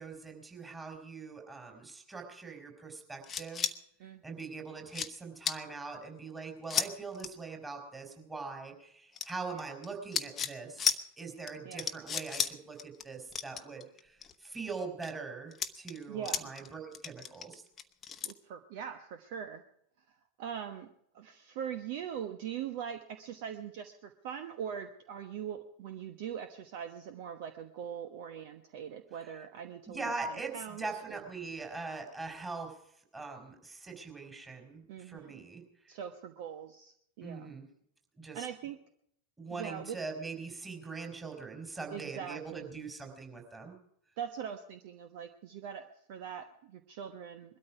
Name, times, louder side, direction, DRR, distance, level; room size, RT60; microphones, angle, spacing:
voice 1, 0.0-3.7 4.2-10.9 11.2-17.6 29.9-32.7 33.1-35.6 37.2-37.6 38.2-38.5 39.4-43.8, right 4 dB, 10° right, 3 dB, 4.3 m, -42 dB
sound 1, 3.2-3.7 4.4-4.5 4.9-5.1 5.4-5.6 6.7-6.9 7.1-7.3 9.2-9.9 10.1-10.5 10.8-11.0 11.5-11.6 11.8-12.5 12.8-13.0 13.3-14.3 14.8-15.1 15.5-16.7 16.9-18.3, left 6 dB, 20° left, 1.1 m, -33 dB
voice 2, 4.0-4.5 9.6-9.7 11.6-11.9 16.1-16.5 18.2-19.6 20.4-20.9 21.1-31.3 34.9-35.5 35.9-37.5 38.3-38.8 39.5-40.0 41.9-42.8 44.2-47.6, right 8 dB, 50° right, 9 dB, 1.1 m, -42 dB
21.5 x 13.0 x 4.8 m, 0.71 s
figure-of-eight pair, 90°, 0 cm